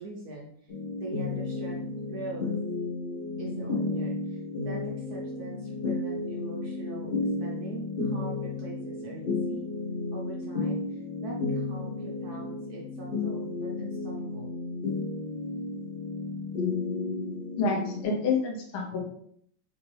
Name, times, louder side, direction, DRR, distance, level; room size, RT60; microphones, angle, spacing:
voice 1, 0.0-2.6 3.4-7.1 7.4-9.7 10.1-14.5, right 3 dB, 65° right, -3 dB, 0.9 m, -42 dB
sound 1, 0.7-18.0, left 3 dB, 65° left, 0.5 m, -33 dB
voice 2, 17.6-19.0, left 4 dB, 85° left, 0 dB, 1.7 m, -28 dB
4.1 x 2.8 x 3.1 m, 0.66 s
omnidirectional pair, 2.2 m